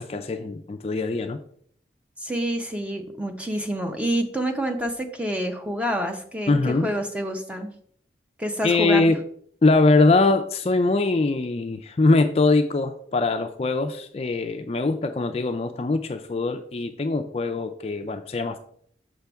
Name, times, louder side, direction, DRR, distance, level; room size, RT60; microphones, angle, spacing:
voice 1, 0.0-1.4 6.5-6.9 8.6-9.1 9.6-18.6, left 3 dB, 35° left, 7 dB, 0.4 m, -22 dB
voice 2, 2.2-7.7 8.4-9.1, equal, 5° right, 4 dB, 0.6 m, -28 dB
6.7 x 5.6 x 3.5 m, 0.62 s
head